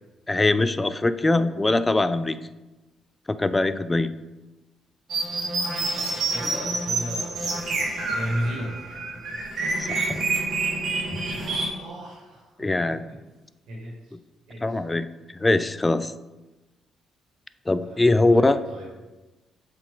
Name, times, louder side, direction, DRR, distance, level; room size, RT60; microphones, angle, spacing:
voice 1, 0.3-2.4 3.3-4.1 9.8-10.2 11.1-11.4 12.6-13.0 14.6-15.1 15.4-16.1 17.7-18.6, left 2 dB, 20° left, 13 dB, 0.3 m, -22 dB
sound 1, 5.1-11.7, right 3 dB, 60° right, 2.0 m, -28 dB
voice 2, 5.8-9.4 11.1-12.9 13.7-14.1 14.5-14.8 17.8-18.9, equal, 90° right, -4 dB, 1.8 m, -36 dB
7.0 x 4.5 x 3.8 m, 1.1 s
cardioid pair, 90°, 0 cm